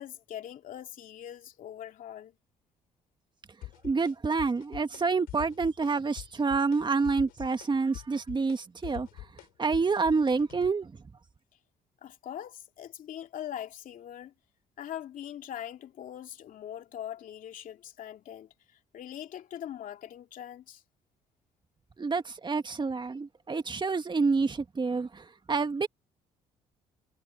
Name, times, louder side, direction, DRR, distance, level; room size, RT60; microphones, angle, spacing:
voice 1, 0.0-2.3 12.0-14.3 14.8-18.5 18.9-20.8, left 10 dB, 65° left, 2.7 m, -42 dB
sound 1, 3.6-4.1 4.4-5.0 5.3-5.9 6.2-6.8 7.0-10.7, left 16 dB, 80° left, 7.1 m, -44 dB
voice 2, 3.8-9.1 9.6-10.9 22.0-25.9, right 4 dB, 30° right, 2.1 m, -28 dB
supercardioid pair, 65°, 15 cm